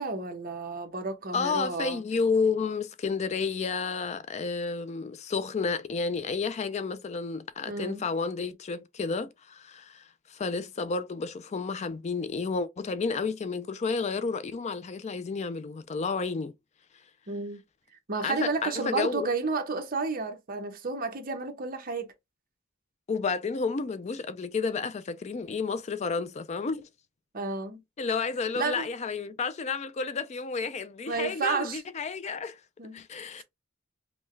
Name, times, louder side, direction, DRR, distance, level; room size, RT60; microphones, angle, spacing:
voice 1, 0.0-2.0 7.7-8.0 17.3-17.6 18.1-22.1 27.3-27.8 28.5-28.9 31.1-31.8 32.8-33.0 33.4-33.5, right 4 dB, 45° right, 1.0 m, -31 dB
voice 2, 1.3-16.5 18.2-19.3 23.1-26.9 28.0-32.6 32.9-33.4, left 4 dB, 35° left, 0.4 m, -31 dB
5.4 x 2.2 x 3.2 m
head